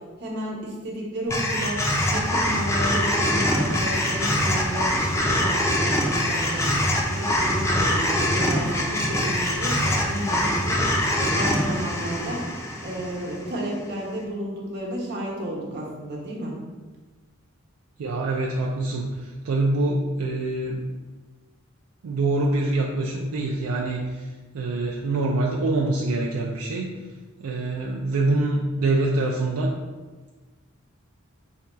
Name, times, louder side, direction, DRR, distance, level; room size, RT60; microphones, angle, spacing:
voice 1, 0.2-6.7 7.1-10.8 11.1-12.4 12.8-16.6, equal, 55° right, -3 dB, 0.9 m, -32 dB
sound 1, 1.3-13.6, left 1 dB, 15° left, 0.4 m, -24 dB
voice 2, 18.0-20.9 22.0-24.3 24.5-26.9 27.4-29.7, right 2 dB, 80° right, -1 dB, 0.4 m, -25 dB
3.6 x 2.2 x 4.2 m, 1.3 s
head